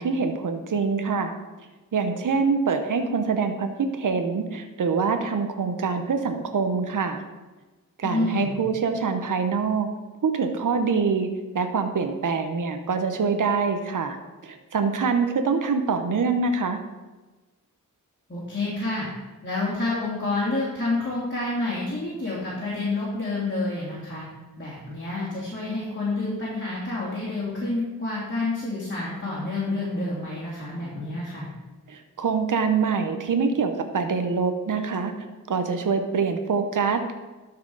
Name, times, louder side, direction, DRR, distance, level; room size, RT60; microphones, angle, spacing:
voice 1, 0.0-1.3 1.9-7.2 8.0-9.9 10.2-11.3 11.5-14.2 14.4-16.8 31.9-35.1 35.5-37.1, right 5 dB, 65° right, 6 dB, 0.9 m, -25 dB
voice 2, 8.0-8.6 18.3-19.1 19.4-24.2 24.6-31.5, left 2 dB, 30° left, -8 dB, 2.9 m, -28 dB
12.0 x 4.8 x 4.8 m, 1.2 s
wide cardioid pair, 75°, 35 cm